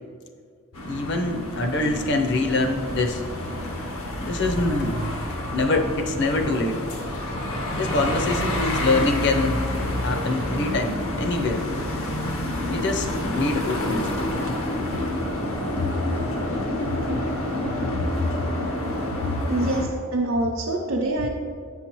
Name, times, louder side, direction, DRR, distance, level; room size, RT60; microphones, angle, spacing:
sound 1, 0.7-19.9, left 1 dB, 85° left, 1.0 m, -28 dB
voice 1, 0.9-3.2 4.2-4.9 5.5-6.8 7.7-9.6 10.0-11.7 12.7-14.1 15.8-15.9 18.0-18.3 19.2-19.4, left 2 dB, 55° left, 4 dB, 0.6 m, -24 dB
voice 2, 19.4-21.3, right 2 dB, 70° right, -2 dB, 0.6 m, -25 dB
8.1 x 5.7 x 3.0 m, 2.1 s
head